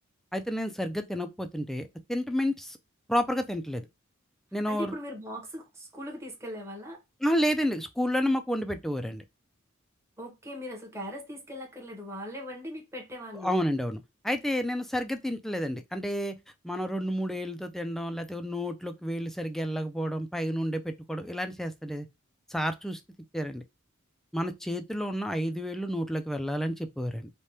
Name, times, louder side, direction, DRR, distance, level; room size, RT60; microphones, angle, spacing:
voice 1, 0.3-2.8 3.1-3.9 4.5-5.0 7.2-9.2 13.4-16.3 16.6-22.1 22.5-23.0 23.3-23.6 24.3-27.3, equal, ahead, 0.3 m, -30 dB
voice 2, 4.7-7.0 10.2-13.5, equal, 15° right, 0.8 m, -39 dB
3.3 x 2.2 x 2.6 m
head